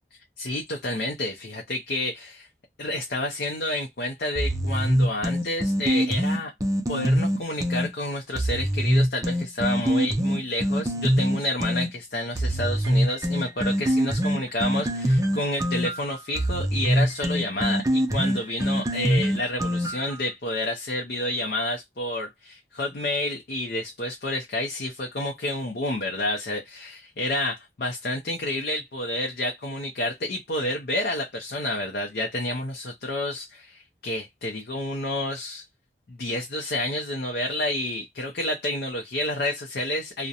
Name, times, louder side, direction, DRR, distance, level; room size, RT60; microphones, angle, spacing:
voice 1, 0.4-2.5 2.8-6.5 6.9-35.6 36.1-40.3, left 1 dB, 55° left, 0.5 m, -29 dB
sound 1, 4.4-7.9 8.4-11.9 12.4-20.2, equal, 20° right, 0.5 m, -24 dB
2.5 x 2.1 x 2.7 m
head